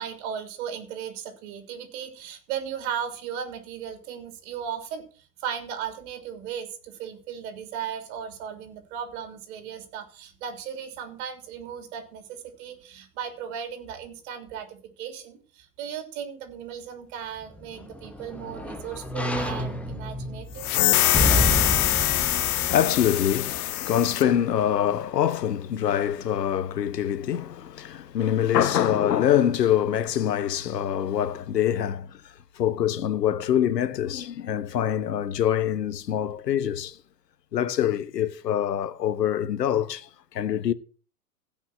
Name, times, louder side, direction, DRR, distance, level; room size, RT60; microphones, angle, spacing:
voice 1, 0.0-20.7, right 8 dB, 50° right, 3.4 m, -36 dB
sound 1, 17.4-23.8 24.2-24.3, equal, 5° left, 1.1 m, -30 dB
sound 2, 20.6-24.3, left 14 dB, 65° left, 1.0 m, -24 dB
voice 2, 21.6-37.0 37.5-40.7, left 10 dB, 85° left, 1.2 m, -25 dB
16.0 x 5.8 x 6.1 m
hypercardioid pair, 125°, 48 cm